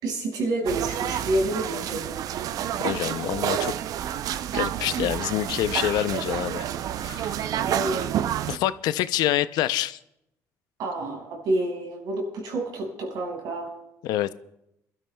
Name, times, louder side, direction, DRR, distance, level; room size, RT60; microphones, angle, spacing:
voice 1, 0.0-2.2 7.6-8.0 10.8-13.7, right 2 dB, 80° right, 0 dB, 5.2 m, -28 dB
sound 1, 0.7-8.6, right 10 dB, 60° right, 0.5 m, -29 dB
voice 2, 2.8-3.7 4.5-6.7 6.9-7.5 8.5-10.0 14.0-14.3, left 13 dB, 85° left, 15 dB, 0.5 m, -26 dB
27.0 x 12.5 x 2.2 m, 0.83 s
cardioid pair, 115°, 7 cm